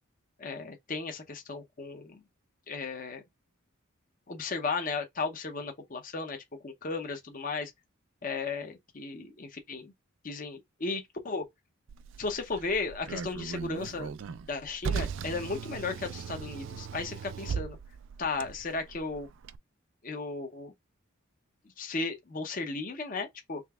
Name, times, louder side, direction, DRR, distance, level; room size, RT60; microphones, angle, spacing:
voice 1, 0.4-2.2 2.7-3.2 4.3-6.4 6.6-7.7 8.2-9.9 10.2-11.4 12.2-14.1 14.5-17.8 18.2-19.3 20.0-20.7 21.8-23.6, left 4 dB, 40° left, 0.7 m, -35 dB
Car, 11.9-19.6, right 6 dB, 60° right, 0.3 m, -38 dB
5.0 x 3.3 x 2.4 m
head